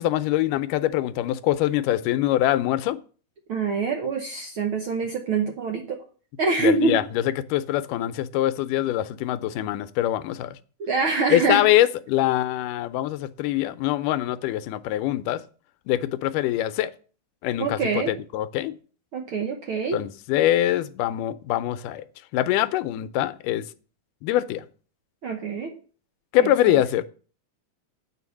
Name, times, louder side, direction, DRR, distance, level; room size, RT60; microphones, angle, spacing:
voice 1, 0.0-3.0 6.6-10.6 11.3-15.4 15.9-16.9 17.4-18.8 19.9-22.0 22.3-23.6 24.2-24.6 26.3-27.0, left 13 dB, 85° left, 2.2 m, -24 dB
voice 2, 3.5-6.0 6.4-7.0 10.8-11.6 17.6-18.1 19.1-20.0 25.2-25.7 26.4-26.8, right 4 dB, 65° right, 1.3 m, -25 dB
8.3 x 4.8 x 7.1 m
omnidirectional pair, 3.7 m